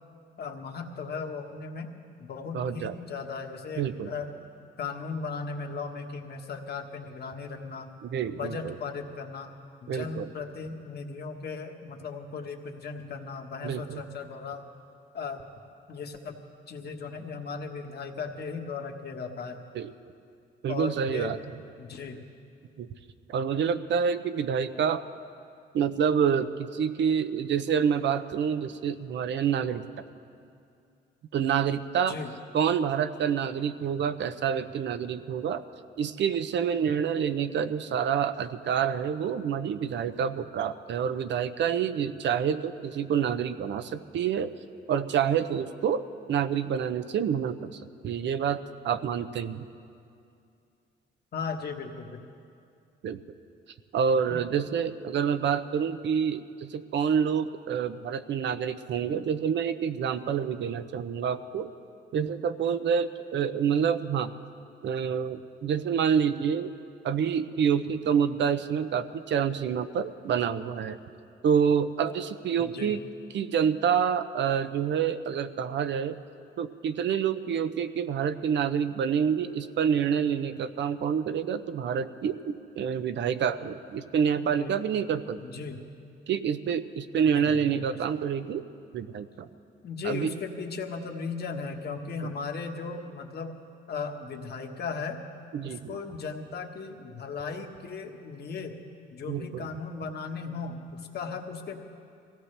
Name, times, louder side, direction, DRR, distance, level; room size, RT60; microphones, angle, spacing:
voice 1, 0.4-1.9 2.2-4.3 4.8-7.9 8.3-9.5 9.8-14.6 15.1-15.4 15.9-16.4 16.7-19.7 20.7-21.4 21.8-22.2 32.1-32.3 51.3-52.2 54.3-54.4 72.6-72.9 84.4-84.7 85.4-85.8 87.3-88.0 89.8-93.6 93.9-95.2 95.6-98.7 99.1-101.8, left 5 dB, 55° left, 3 dB, 1.4 m, -37 dB
voice 2, 2.5-2.9 3.8-4.1 8.0-8.7 9.9-10.3 13.6-14.0 19.7-19.9 20.6-21.4 22.8-22.9 23.3-25.0 25.7-29.8 31.3-32.1 32.5-35.6 36.0-44.5 44.9-49.7 53.0-53.2 53.9-61.7 62.1-64.3 64.8-66.7 67.0-71.0 71.4-73.0 73.3-76.2 76.6-85.4 86.3-88.6 88.9-89.5 90.0-90.3 95.5-96.0 99.3-99.7, right 7 dB, 65° right, 11 dB, 0.7 m, -27 dB
22.5 x 16.5 x 3.4 m, 2.5 s
cardioid pair, 90°, 20 cm